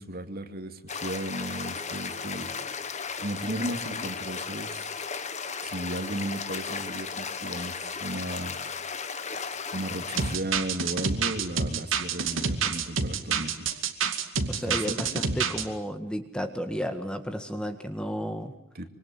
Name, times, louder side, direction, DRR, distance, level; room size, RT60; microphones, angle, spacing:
voice 1, 0.0-2.5 3.2-4.9 5.6-8.6 9.3-13.7 14.6-14.9 18.7-18.9, right 1 dB, 50° right, 7 dB, 2.5 m, -35 dB
sound 1, 0.9-10.4, left 5 dB, 35° left, 1.6 m, -35 dB
sound 2, 10.2-15.6, right 5 dB, 75° right, 2.4 m, -28 dB
voice 2, 14.5-18.6, equal, 5° left, 7 dB, 1.8 m, -32 dB
25.5 x 25.0 x 9.3 m, 0.73 s
head